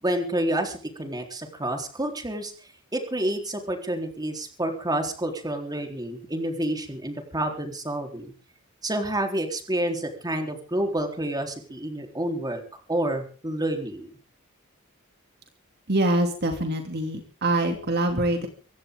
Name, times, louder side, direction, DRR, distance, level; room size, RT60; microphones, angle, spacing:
voice 1, 0.0-2.5 2.9-8.3 8.8-12.6 12.9-14.1, right 1 dB, 20° right, 4 dB, 3.9 m, -29 dB
voice 2, 15.9-18.5, right 1 dB, 50° right, 5 dB, 2.7 m, -24 dB
24.0 x 16.0 x 3.8 m, 0.39 s
head